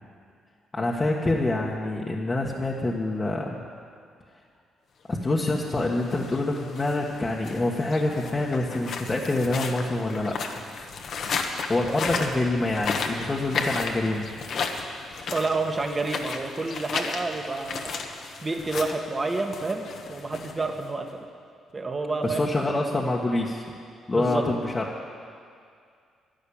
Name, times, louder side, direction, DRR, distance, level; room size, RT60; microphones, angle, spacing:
voice 1, 0.7-3.6 5.1-10.4 11.7-14.3 22.2-23.6 24.1-24.8, left 2 dB, 25° left, -3 dB, 1.5 m, -26 dB
sound 1, 5.4-21.1, left 4 dB, 60° left, 1.3 m, -34 dB
voice 2, 11.8-12.5 15.3-17.9 18.4-21.3 21.7-22.9 24.1-24.4, right 3 dB, 25° right, 3 dB, 1.7 m, -29 dB
11.5 x 11.5 x 8.8 m, 2.2 s
cardioid pair, 90°, 0 cm